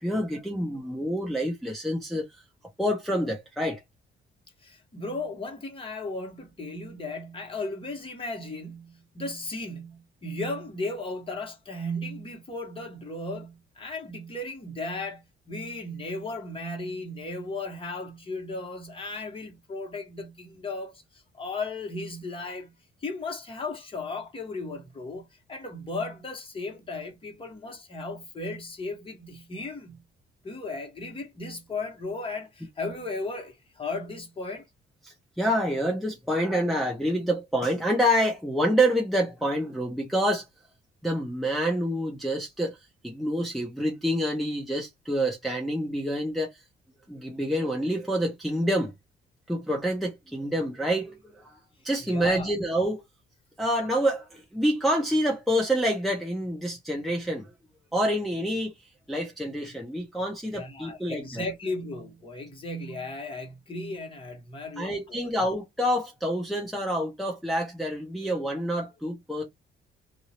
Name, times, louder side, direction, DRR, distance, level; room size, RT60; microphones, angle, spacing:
voice 1, 0.0-2.2 2.8-3.8 35.0-40.5 41.0-42.8 43.0-46.6 47.1-48.9 49.5-51.6 51.8-53.0 53.6-57.5 57.9-58.7 59.1-61.4 64.8-69.4, equal, ahead, 0.9 m, -27 dB
voice 2, 4.6-22.7 23.0-30.0 30.4-34.6 52.0-52.5 60.5-65.3, left 2 dB, 25° left, 1.5 m, -36 dB
2.7 x 2.6 x 3.0 m
cardioid pair, 110°, 20 cm